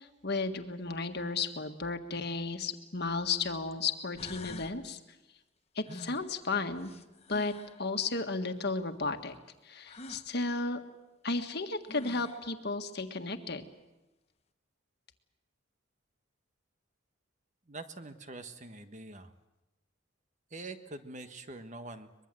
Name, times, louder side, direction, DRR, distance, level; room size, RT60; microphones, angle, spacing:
voice 1, 0.0-5.0 5.7-6.9 7.3-7.5 7.8-9.4 9.6-10.8 11.2-13.7, left 3 dB, 55° left, 6 dB, 1.7 m, -34 dB
sound 1, 2.7-2.8 3.7-3.8 4.1-4.8 5.8-7.8 9.8-10.3 11.5-11.6 11.9-12.5, left 2 dB, 30° left, 1.1 m, -47 dB
voice 2, 17.7-19.3 20.5-22.3, right 2 dB, 35° right, 8 dB, 1.4 m, -45 dB
23.5 x 22.0 x 7.7 m, 1.0 s
head